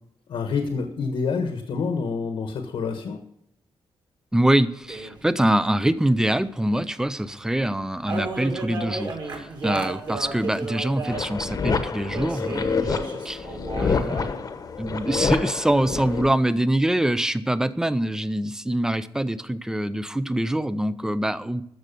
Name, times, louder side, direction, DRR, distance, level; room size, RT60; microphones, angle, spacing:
voice 1, 0.3-3.2, left 5 dB, 75° left, 5 dB, 1.4 m, -27 dB
voice 2, 4.3-13.5 13.8-14.3 14.8-21.6, right 1 dB, 5° right, 14 dB, 0.5 m, -24 dB
sound 1, 4.9-5.2 7.0-7.1 7.3-7.4 7.7-7.8 8.0-11.5 12.1-14.4, right 3 dB, 50° right, 2.6 m, -33 dB
sound 2, 11.1-16.3, left 5 dB, 40° left, 1.1 m, -27 dB
14.0 x 6.5 x 6.8 m, 0.75 s
wide cardioid pair, 145°, 9 cm